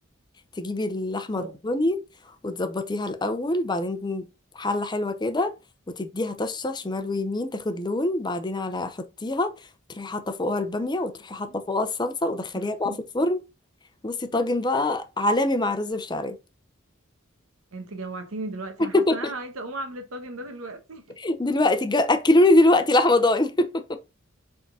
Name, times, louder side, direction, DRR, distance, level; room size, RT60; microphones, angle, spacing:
voice 1, 0.6-2.0 2.4-4.3 4.6-5.5 6.0-9.5 10.0-13.4 14.0-16.4 18.9-19.2 21.2-24.0, left 2 dB, 20° left, 0.6 m, -24 dB
voice 2, 12.5-13.0 17.7-21.2, right 2 dB, 90° right, 1.2 m, -36 dB
4.8 x 3.7 x 5.4 m
head